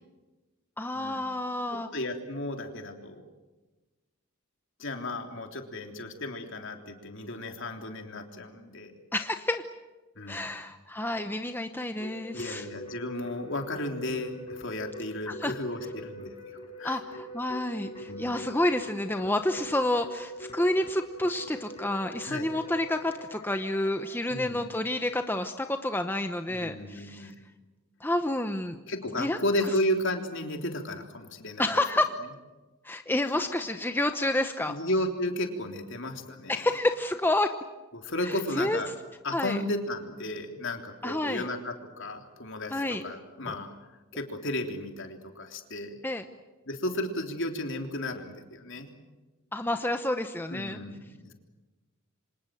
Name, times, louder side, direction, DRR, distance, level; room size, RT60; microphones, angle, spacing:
voice 1, 0.8-1.9 9.1-9.6 10.3-12.7 15.3-15.5 16.8-27.3 28.0-28.8 29.2-29.4 31.6-32.1 32.8-34.8 36.5-37.5 38.2-38.8 39.3-39.6 41.0-41.5 42.7-43.0 43.5-43.6 46.0-46.2 49.5-50.8, left 1 dB, 10° left, 7 dB, 0.9 m, -29 dB
voice 2, 1.7-3.2 4.8-8.9 10.2-10.5 12.3-17.0 18.1-18.4 22.2-22.5 24.3-24.7 26.5-27.4 28.9-31.7 34.7-36.7 37.9-38.9 39.2-43.7 44.1-46.0 46.7-48.9 50.5-51.3, left 1 dB, 55° left, 4 dB, 3.4 m, -34 dB
Keyboard (musical), 12.0-24.4, equal, 25° left, 5.4 m, -43 dB
28.0 x 26.0 x 7.7 m, 1.2 s
head